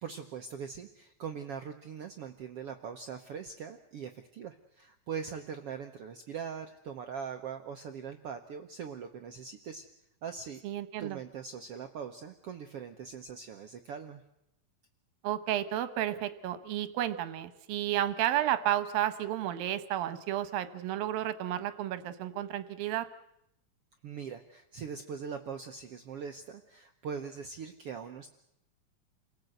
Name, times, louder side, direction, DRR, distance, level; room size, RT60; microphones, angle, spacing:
voice 1, 0.0-9.9 10.2-10.6 11.0-14.2 24.0-28.3, right 6 dB, 70° right, 5 dB, 1.4 m, -41 dB
voice 2, 10.6-11.2 15.2-23.1, right 12 dB, 85° right, 11 dB, 2.9 m, -32 dB
29.0 x 18.0 x 7.9 m, 0.81 s
omnidirectional pair, 4.0 m